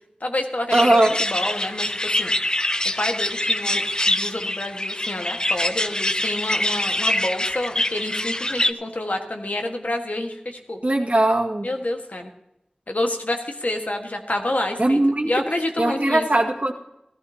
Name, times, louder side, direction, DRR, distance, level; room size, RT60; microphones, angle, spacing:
voice 1, 0.2-2.3 3.0-10.8 11.6-12.3 12.9-16.2, left 1 dB, 75° left, 3 dB, 1.5 m, -28 dB
sound 1, 0.7-8.7, left 1 dB, 30° left, 0.5 m, -24 dB
voice 2, 0.7-1.2 10.8-11.7 14.8-15.3 15.8-16.7, right 1 dB, 60° right, 0 dB, 1.9 m, -19 dB
16.5 x 14.0 x 2.8 m, 0.82 s
wide cardioid pair, 45°, 3 cm